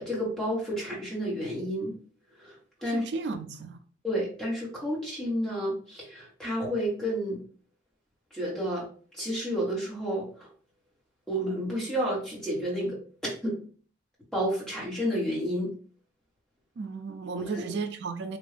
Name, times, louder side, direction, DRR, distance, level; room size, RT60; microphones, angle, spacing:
voice 1, 0.0-1.9 2.4-3.4 4.0-7.4 8.3-8.9 9.1-10.5 11.3-13.6 14.3-15.7 17.3-17.6, equal, 5° left, 1.5 m, -31 dB
voice 2, 2.8-3.8 16.8-18.4, right 4 dB, 70° right, 0.4 m, -34 dB
3.5 x 2.5 x 3.3 m
head